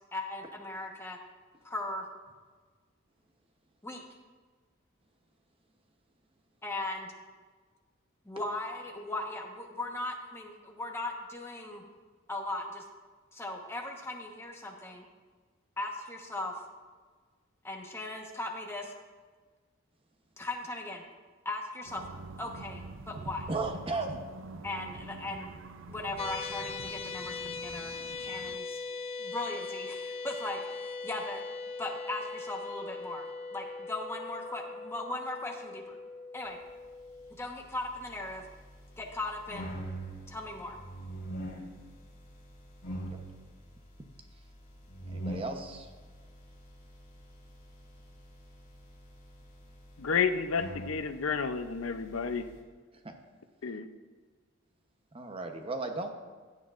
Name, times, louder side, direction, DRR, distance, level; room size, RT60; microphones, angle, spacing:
voice 1, 0.1-1.2 1.6-2.0 3.8-4.0 6.6-7.1 8.2-11.8 12.3-12.8 13.3-15.1 15.8-16.5 17.6-18.9 20.4-21.0 21.4-22.0 22.4-23.4 24.6-25.5 25.9-27.9 28.2-28.8 29.2-31.4 31.8-33.2 33.5-36.0 36.3-36.6 37.4-38.5 39.0-39.8 40.3-40.8, left 2 dB, 10° left, 1 dB, 1.1 m, -38 dB
sound 1, 21.9-28.6, right 3 dB, 65° right, 0.5 m, -46 dB
voice 2, 23.5-24.2 45.1-45.9 53.0-53.1 55.1-56.1, right 3 dB, 25° right, 4 dB, 0.8 m, -35 dB
sound 2, 26.2-37.3, left 4 dB, 30° left, 0.3 m, -40 dB
sound 3, 37.2-52.6, right 1 dB, 50° left, 2.8 m, -45 dB
voice 3, 50.0-52.5 53.6-53.9, left 5 dB, 80° left, 9 dB, 0.6 m, -31 dB
16.5 x 9.1 x 2.5 m, 1.5 s
head